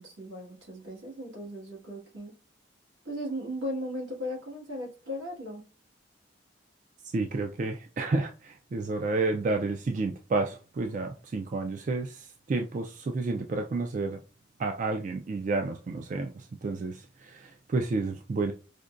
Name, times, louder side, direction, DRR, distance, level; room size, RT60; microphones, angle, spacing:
voice 1, 0.0-2.3 3.0-5.6, equal, 85° right, 1.7 m, -37 dB
voice 2, 7.1-14.2 14.6-18.5, right 3 dB, 40° right, 0.3 m, -30 dB
5.0 x 2.2 x 2.5 m
head